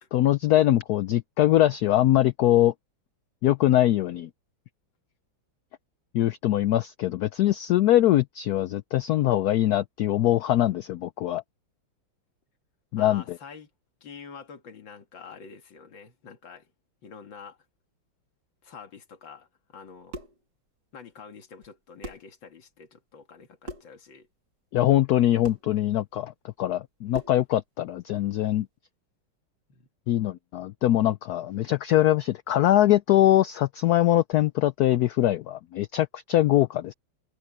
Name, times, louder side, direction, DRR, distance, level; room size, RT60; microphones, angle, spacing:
voice 1, 0.1-2.7 3.4-4.3 6.1-11.4 12.9-13.2 24.7-26.3 26.6-28.7 30.1-36.9, left 13 dB, 85° left, 0.8 m, -22 dB
voice 2, 12.9-13.7 14.0-16.7 17.0-17.6 18.6-20.1 20.9-24.3 29.7-29.9, left 6 dB, 70° left, 2.7 m, -46 dB
sound 1, 19.8-20.4 21.6-21.7 22.0-22.3 23.6-24.0 25.4-25.7 27.1-27.5, right 1 dB, 60° right, 3.5 m, -40 dB
omnidirectional pair, 2.2 m